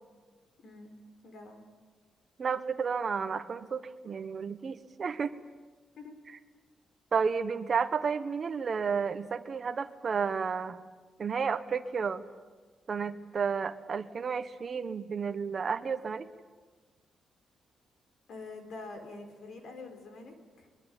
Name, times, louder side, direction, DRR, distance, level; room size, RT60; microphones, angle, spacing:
voice 1, 0.6-0.9 1.2-1.6 6.0-6.1 18.3-20.7, left 3 dB, 55° left, 6 dB, 3.9 m, -46 dB
voice 2, 2.4-5.4 7.1-10.8 11.2-12.2 12.9-16.3, right 6 dB, 30° right, 8 dB, 1.1 m, -32 dB
23.0 x 22.5 x 9.0 m, 1.4 s
wide cardioid pair, 180°, 0 cm